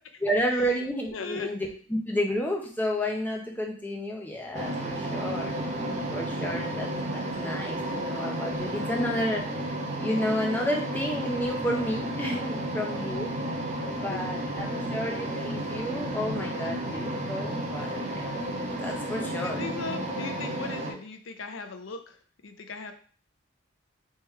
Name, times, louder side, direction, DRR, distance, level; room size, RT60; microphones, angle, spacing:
voice 1, 0.2-5.5 6.1-9.4 10.0-13.3 13.9-18.2 18.8-19.6, equal, 10° left, 0 dB, 0.8 m, -31 dB
voice 2, 1.1-1.5 14.1-14.2 19.4-22.9, left 4 dB, 90° left, 7 dB, 0.6 m, -38 dB
sound 1, 4.5-20.9, right 1 dB, 40° right, 0.8 m, -32 dB
3.4 x 3.3 x 4.4 m, 0.42 s
head